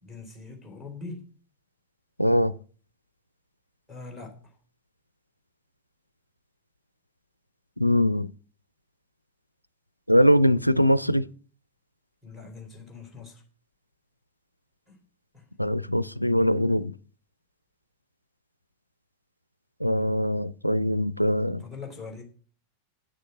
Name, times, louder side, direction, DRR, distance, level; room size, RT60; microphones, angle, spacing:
voice 1, 0.0-1.3 3.9-4.5 12.2-13.4 14.9-15.0 15.3-15.5 21.6-22.2, left 4 dB, 5° left, 3.2 m, -42 dB
voice 2, 2.2-2.5 7.8-8.3 10.1-11.3 15.6-16.9 19.8-21.6, equal, 90° left, 0.4 m, -22 dB
9.2 x 6.5 x 6.3 m
figure-of-eight pair, 90°, 0 cm